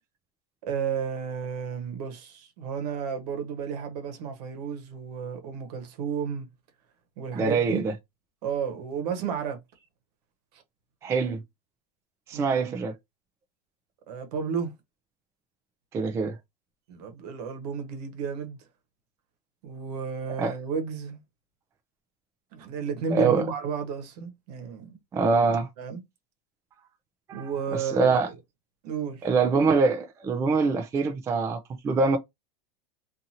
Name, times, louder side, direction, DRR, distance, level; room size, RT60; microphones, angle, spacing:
voice 1, 0.6-6.5 7.2-7.8 8.4-9.6 10.5-10.6 12.3-12.7 14.1-14.7 16.9-18.6 19.6-21.2 22.5-25.0 25.8-26.0 27.3-28.3 28.8-29.3, right 6 dB, 70° right, 1.0 m, -32 dB
voice 2, 7.3-7.9 11.0-11.4 12.3-12.9 15.9-16.4 20.4-20.5 23.1-23.4 25.1-25.7 27.3-28.3 29.2-32.2, right 4 dB, 15° right, 0.3 m, -24 dB
2.7 x 2.6 x 2.7 m
supercardioid pair, 150°, 21 cm